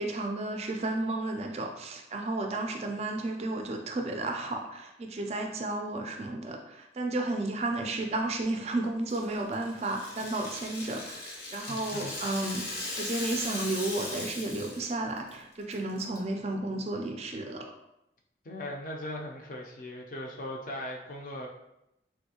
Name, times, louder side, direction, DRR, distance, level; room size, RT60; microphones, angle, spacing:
voice 1, 0.0-12.6 13.0-17.7, right 2 dB, 35° right, 3 dB, 0.3 m, -33 dB
Rattle (instrument), 9.1-14.9 15.2-15.3 15.7-16.2, left 2 dB, 65° left, 0.8 m, -38 dB
voice 2, 11.7-12.2 18.4-21.5, left 1 dB, 50° left, 0 dB, 0.5 m, -39 dB
3.4 x 2.6 x 2.8 m, 0.86 s
head